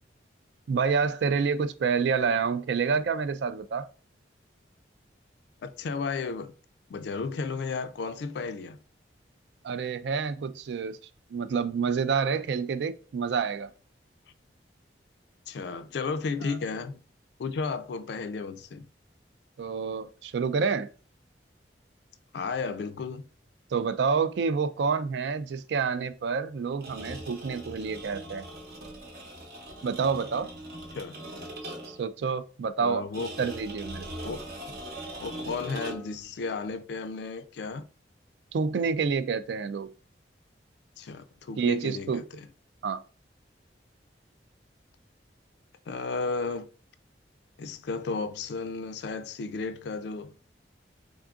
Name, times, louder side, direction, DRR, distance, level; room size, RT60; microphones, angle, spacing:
voice 1, 0.7-3.9 9.6-11.0 11.3-13.7 16.4-16.6 19.6-20.9 23.7-28.4 29.8-30.5 31.6-33.1 33.4-34.1 38.5-39.9 41.6-42.3 42.8-43.0, right 5 dB, 70° right, 0.3 m, -28 dB
voice 2, 5.6-6.5 6.9-8.8 15.5-17.0 17.4-18.9 22.3-23.2 30.9-31.2 32.8-33.3 34.2-34.4 35.2-37.8 41.0-42.4 45.9-46.7 47.6-50.3, left 4 dB, 65° left, 0.3 m, -33 dB
sound 1, 26.7-32.1 33.1-36.2, right 1 dB, 55° right, 0.8 m, -41 dB
3.6 x 3.6 x 2.4 m
head